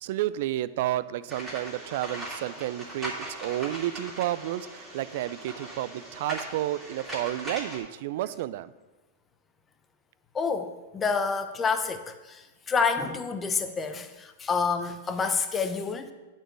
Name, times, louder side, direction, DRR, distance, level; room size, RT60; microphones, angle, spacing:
voice 1, 0.0-8.7, right 14 dB, 60° right, 17 dB, 0.4 m, -31 dB
sound 1, 1.3-7.8, right 1 dB, 10° right, 2.7 m, -39 dB
voice 2, 10.3-16.1, left 5 dB, 20° left, 8 dB, 0.8 m, -28 dB
9.1 x 4.4 x 7.0 m, 1.2 s
hypercardioid pair, 120°, 0 cm